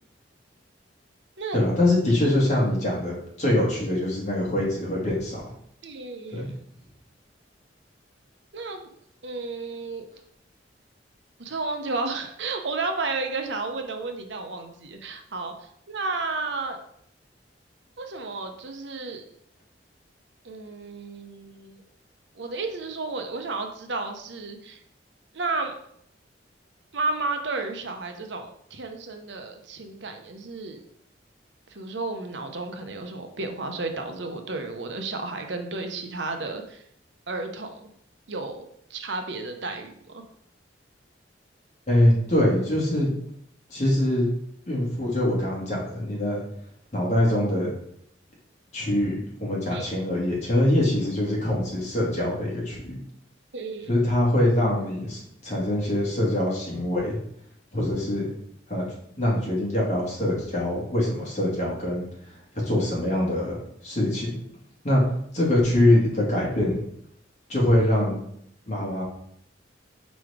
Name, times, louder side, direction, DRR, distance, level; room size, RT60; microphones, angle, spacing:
voice 1, 1.5-5.4 6.3-6.5 41.9-43.1 43.7-44.3 44.7-46.4 46.9-47.7 48.7-53.0 53.9-57.2 57.7-58.3 58.7-58.9 59.2-62.0 62.5-63.6 63.8-64.3 64.8-65.0 65.3-66.8 67.5-68.2 68.7-69.0, left 1 dB, 40° left, -4 dB, 2.1 m, -23 dB
voice 2, 5.8-6.5 8.5-8.8 9.2-10.0 11.4-16.8 18.0-19.2 20.4-21.8 22.4-24.8 25.3-25.7 26.9-30.8 31.7-36.8 37.3-37.8 38.3-40.2 49.7-49.9 53.5-53.9, right 3 dB, 70° right, 5 dB, 0.8 m, -32 dB
4.7 x 4.2 x 4.9 m, 0.70 s
head